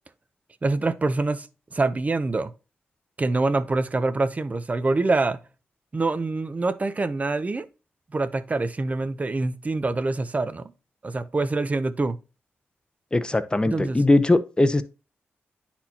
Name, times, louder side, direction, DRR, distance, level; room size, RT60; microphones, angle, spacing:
voice 1, 0.6-1.5 1.7-2.5 3.2-5.4 5.9-7.7 8.1-10.7 11.0-12.2 13.7-14.0, right 3 dB, 35° right, 0.5 m, -25 dB
voice 2, 13.1-14.8, left 2 dB, 20° left, 0.7 m, -20 dB
9.8 x 4.3 x 2.8 m
cardioid pair, 60°, 4 cm